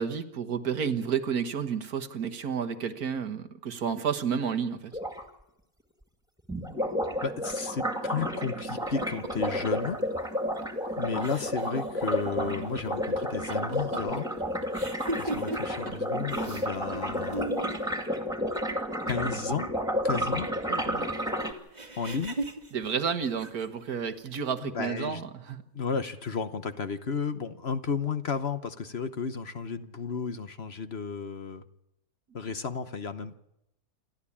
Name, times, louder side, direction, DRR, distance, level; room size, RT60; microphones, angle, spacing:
voice 1, 0.0-4.9 20.7-21.1 22.7-25.6, right 7 dB, 75° right, 7 dB, 1.9 m, -31 dB
sound 1, 4.9-5.2 6.5-21.5, equal, ahead, 2.3 m, -31 dB
voice 2, 7.2-10.0 11.0-14.3 15.2-17.5 19.1-19.7 20.0-20.5 22.0-22.4 24.6-25.2 25.7-31.6 32.3-33.4, left 5 dB, 45° left, 11 dB, 1.1 m, -33 dB
sound 2, 8.8-9.7 10.6-10.9 11.1-16.0 16.3-16.7 16.9-17.8 21.7-23.9, right 2 dB, 30° right, 1.7 m, -38 dB
28.5 x 12.5 x 8.6 m, 0.84 s
omnidirectional pair, 1.6 m